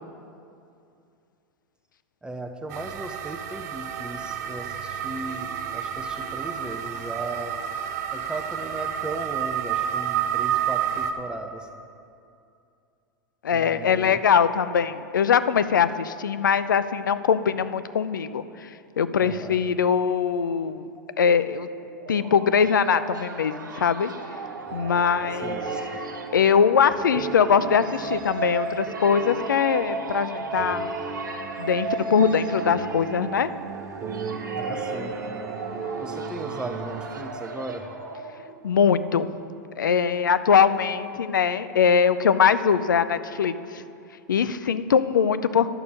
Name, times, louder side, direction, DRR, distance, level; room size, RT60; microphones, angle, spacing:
voice 1, 2.2-7.5 8.1-11.7 13.5-14.2 19.2-19.6 25.4-26.0 34.5-35.1 36.0-37.9, right 2 dB, 10° right, 4 dB, 0.7 m, -37 dB
sound 1, 2.7-11.1, right 9 dB, 60° right, 0.7 m, -30 dB
voice 2, 13.4-18.4 19.0-20.9 21.2-21.7 22.1-24.1 24.7-25.6 26.3-30.9 31.6-33.5 38.6-39.3 39.8-43.8 44.3-45.7, left 7 dB, 80° left, 13 dB, 0.4 m, -22 dB
sound 2, 21.7-38.7, right 3 dB, 80° right, 1.0 m, -35 dB
sound 3, 24.7-37.2, right 5 dB, 30° right, 0.9 m, -37 dB
11.0 x 6.8 x 5.2 m, 2.5 s
hypercardioid pair, 95°, 10 cm